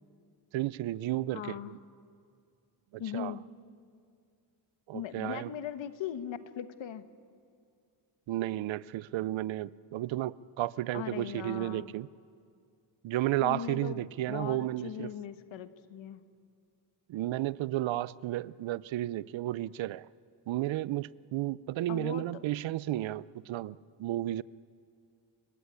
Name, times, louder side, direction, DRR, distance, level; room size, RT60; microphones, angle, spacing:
voice 1, 0.5-1.8 2.9-3.3 4.9-5.5 8.3-12.1 13.0-15.1 17.1-20.1 20.5-24.4, right 15 dB, 75° right, 0.6 m, -33 dB
voice 2, 1.3-1.7 3.0-3.4 4.9-7.0 10.9-11.9 13.4-16.2 21.9-22.3, left 9 dB, 70° left, 1.3 m, -39 dB
29.5 x 16.5 x 9.8 m
wide cardioid pair, 170°, 47 cm